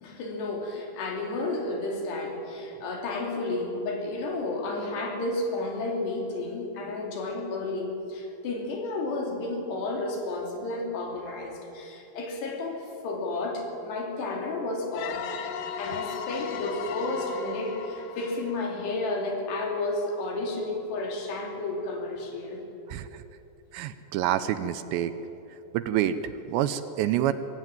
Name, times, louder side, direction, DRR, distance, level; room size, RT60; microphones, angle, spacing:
voice 1, 0.0-15.3 15.8-22.6, left 2 dB, 65° left, 1 dB, 4.9 m, -32 dB
sound 1, 14.9-19.5, left 7 dB, 85° left, 3.7 m, -37 dB
voice 2, 22.9-23.2 23.7-25.2 25.7-27.3, right 11 dB, 80° right, 11 dB, 2.8 m, -27 dB
24.0 x 17.0 x 8.9 m, 2.9 s
omnidirectional pair, 5.3 m